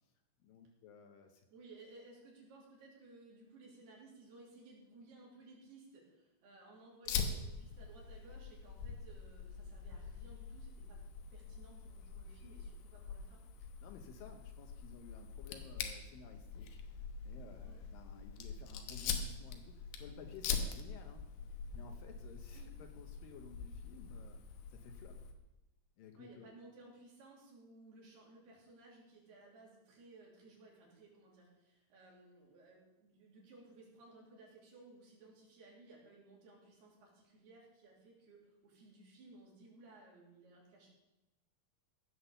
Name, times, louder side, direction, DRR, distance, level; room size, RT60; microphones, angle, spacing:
voice 1, 0.4-1.5 13.6-21.3 21.7-24.4 24.7-25.2 26.0-26.5, left 6 dB, 70° left, 5 dB, 2.4 m, -55 dB
voice 2, 1.5-11.0 11.3-13.4 17.6-17.8 22.5-22.7 26.2-40.9, right 2 dB, 75° right, -3 dB, 5.1 m, -59 dB
Fire, 7.1-25.3, left 6 dB, 90° left, 3.1 m, -44 dB
16.5 x 5.9 x 6.8 m, 0.98 s
omnidirectional pair, 4.6 m